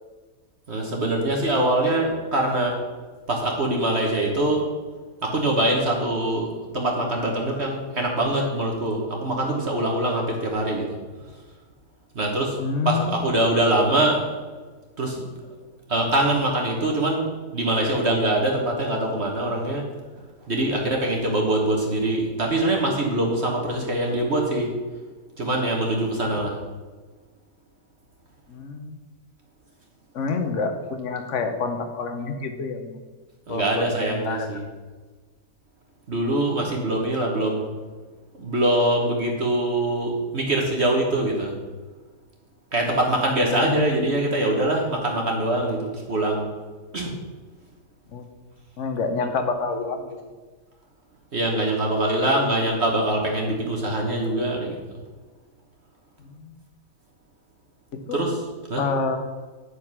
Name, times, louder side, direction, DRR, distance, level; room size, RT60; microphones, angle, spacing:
voice 1, 0.7-2.8 3.3-4.7 5.2-10.9 12.1-12.6 12.8-14.2 15.0-15.3 15.9-17.2 17.5-19.9 20.4-24.7 25.4-26.6 33.5-34.6 36.1-37.6 38.4-41.5 42.7-46.5 46.9-47.1 51.3-54.8 58.1-58.4 58.7-58.8, right 1 dB, 45° right, 0 dB, 1.3 m, -23 dB
voice 2, 12.6-13.1 28.5-29.0 30.1-33.0 33.5-34.5 36.5-36.7 43.5-44.0 48.1-48.3 48.8-50.3 56.2-56.5 58.1-58.2 58.8-59.2, left 4 dB, 50° left, 7 dB, 1.1 m, -28 dB
9.8 x 5.2 x 6.0 m, 1.4 s
omnidirectional pair, 1.8 m